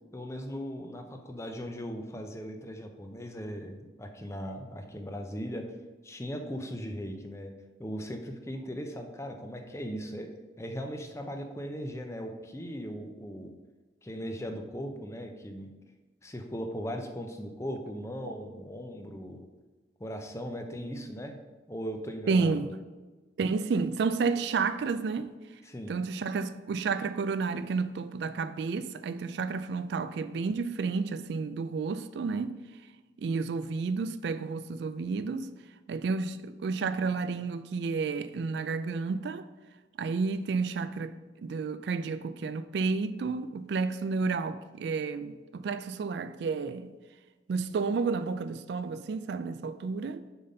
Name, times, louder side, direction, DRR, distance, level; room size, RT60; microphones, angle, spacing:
voice 1, 0.1-5.7 6.0-7.5 7.8-10.3 10.6-13.5 14.0-15.7 16.2-19.5 20.0-21.4 21.7-22.7 25.7-26.0, equal, 15° left, 0.6 m, -38 dB
voice 2, 22.3-22.7 23.4-25.3 25.9-32.6 33.2-35.5 35.9-39.5 40.0-46.9 47.5-50.3, right 4 dB, 65° right, 0.3 m, -31 dB
6.8 x 4.0 x 5.4 m
head